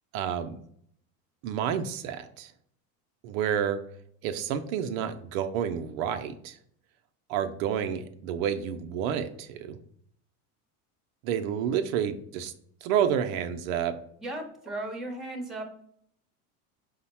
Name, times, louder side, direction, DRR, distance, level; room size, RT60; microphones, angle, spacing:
voice 1, 0.1-0.6 1.4-2.5 3.2-3.8 4.2-6.6 7.3-9.8 11.2-12.5 12.8-13.9, right 8 dB, 65° right, 7 dB, 0.5 m, -29 dB
voice 2, 14.2-15.6, right 1 dB, ahead, 1 dB, 0.8 m, -36 dB
5.0 x 2.1 x 4.1 m, 0.67 s
supercardioid pair, 115°, 44 cm